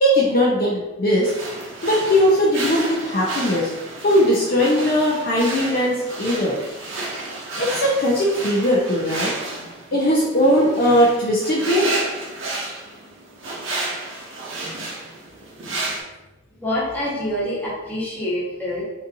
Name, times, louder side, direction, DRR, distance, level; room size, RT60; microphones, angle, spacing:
voice 1, 0.0-1.3 1.8-3.7 4.0-6.6 7.6-9.3 9.9-11.9, equal, 45° left, -5 dB, 0.5 m, -19 dB
sound 1, 1.2-16.0, right 2 dB, 75° right, 0.7 m, -31 dB
voice 2, 16.6-18.8, left 1 dB, 10° left, -10 dB, 1.2 m, -26 dB
4.0 x 2.7 x 2.6 m, 1.0 s
head